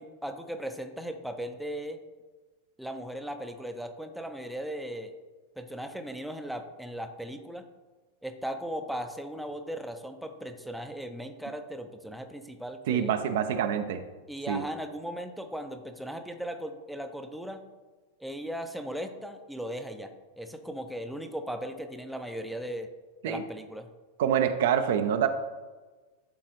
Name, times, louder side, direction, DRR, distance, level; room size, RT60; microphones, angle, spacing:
voice 1, 0.0-2.0 2.8-5.1 5.6-7.7 8.2-13.1 14.3-17.6 18.2-22.9 23.2-23.9, equal, ahead, 6 dB, 0.5 m, -37 dB
voice 2, 12.9-14.0 14.5-14.6 23.2-23.4 24.2-25.3, right 8 dB, 55° right, 8 dB, 0.4 m, -26 dB
11.0 x 3.9 x 3.0 m, 1.3 s
figure-of-eight pair, 90°, 0 cm